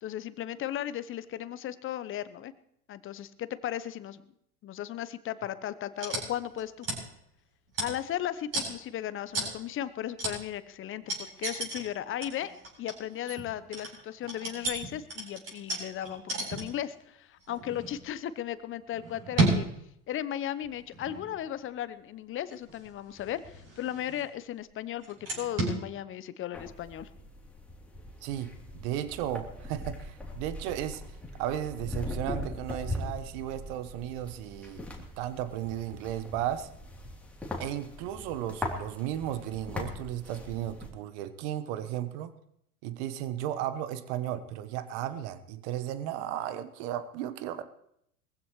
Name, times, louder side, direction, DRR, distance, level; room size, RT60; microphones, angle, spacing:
voice 1, 0.0-2.5 2.9-4.2 4.6-6.9 7.8-12.5 12.8-16.2 16.5-19.7 20.1-27.1, left 11 dB, 30° left, 15 dB, 0.9 m, -36 dB
sound 1, 6.0-6.3 6.5-7.0 7.7-8.2 8.5-8.7 9.3-9.6 10.2-10.4 11.1-11.8 12.2-16.9 17.4-18.0 18.9-19.7 20.6-21.5 22.5-24.4 25.0-25.8, right 2 dB, 35° right, 8.0 m, -33 dB
sound 2, 26.5-40.9, left 1 dB, 5° left, 3.2 m, -40 dB
voice 2, 28.2-31.0 31.4-36.7 37.6-42.3 42.8-47.6, right 11 dB, 50° right, 12 dB, 1.3 m, -35 dB
22.5 x 15.5 x 3.2 m, 0.73 s
figure-of-eight pair, 85°, 44 cm